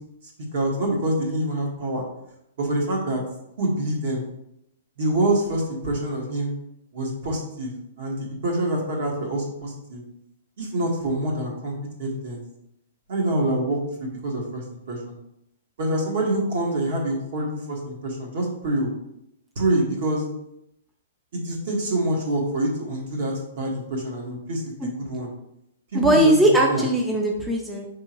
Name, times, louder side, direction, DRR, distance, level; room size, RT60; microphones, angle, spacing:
voice 1, 0.5-2.1 2.6-3.2 3.6-4.2 5.0-6.5 6.9-7.7 8.0-10.0 10.6-12.4 13.1-15.1 15.8-18.9 19.5-20.2 21.3-25.3 25.9-26.4 26.7-26.8, right 1 dB, 60° right, 0 dB, 1.5 m, -26 dB
voice 2, 25.9-27.9, right 1 dB, 5° right, -1 dB, 0.4 m, -19 dB
5.0 x 3.5 x 2.9 m, 0.81 s
hypercardioid pair, 150°, 0 cm